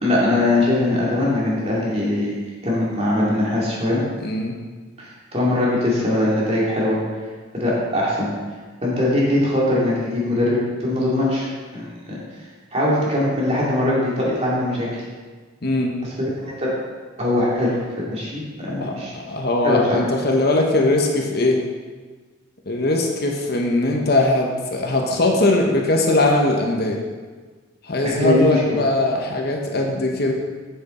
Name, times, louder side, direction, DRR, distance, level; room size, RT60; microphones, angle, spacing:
voice 1, 0.0-2.3 2.6-4.0 5.0-7.0 7.5-8.3 8.8-11.5 11.7-12.2 12.7-15.0 16.2-16.7 17.2-17.8 18.1-19.1 19.6-20.0 28.0-28.8, left 1 dB, 30° right, -5 dB, 2.3 m, -21 dB
voice 2, 4.2-4.5 15.6-15.9 18.8-21.6 22.7-27.0 27.8-30.3, left 2 dB, 50° left, 1 dB, 1.0 m, -20 dB
7.8 x 6.9 x 4.2 m, 1.4 s
head